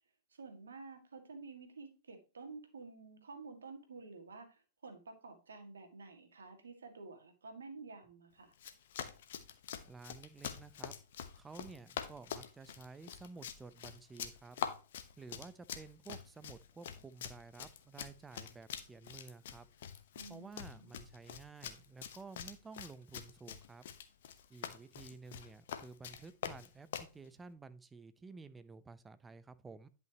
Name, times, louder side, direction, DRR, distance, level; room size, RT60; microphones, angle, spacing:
voice 1, 0.3-8.5 20.2-20.9, right 4 dB, 75° right, 6 dB, 1.9 m, -51 dB
Run, 8.5-27.1, left 9 dB, 60° left, 1.0 m, -45 dB
voice 2, 9.8-10.9 11.3-14.6 15.2-19.7 20.3-23.9 24.5-29.9, right 4 dB, 15° right, 14 dB, 0.7 m, -53 dB
10.5 x 5.8 x 2.9 m, 0.33 s
figure-of-eight pair, 105°, 0 cm